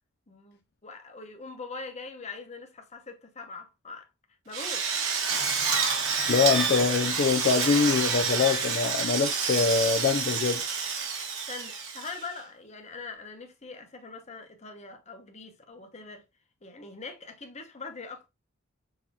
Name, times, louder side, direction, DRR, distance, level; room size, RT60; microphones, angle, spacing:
voice 1, 0.3-4.1 4.4-4.9 11.5-16.2 16.6-18.3, left 4 dB, 35° left, 0.9 m, -42 dB
Drill, 4.5-12.4, right 5 dB, 70° right, 1.5 m, -28 dB
voice 2, 6.3-10.6, left 5 dB, 50° left, 0.4 m, -24 dB
6.5 x 2.8 x 2.8 m
head